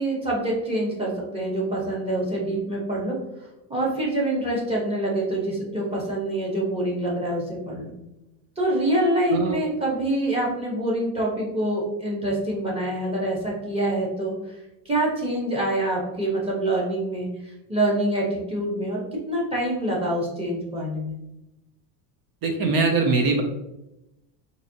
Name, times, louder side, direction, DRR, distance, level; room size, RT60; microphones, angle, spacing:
voice 1, 0.0-3.2 3.7-7.9 8.6-14.6 14.8-21.2, right 1 dB, 10° right, -4 dB, 1.0 m, -26 dB
voice 2, 22.4-23.4, right 3 dB, 50° right, 3 dB, 0.6 m, -22 dB
4.1 x 2.6 x 2.8 m, 0.92 s
cardioid pair, 140°, 46 cm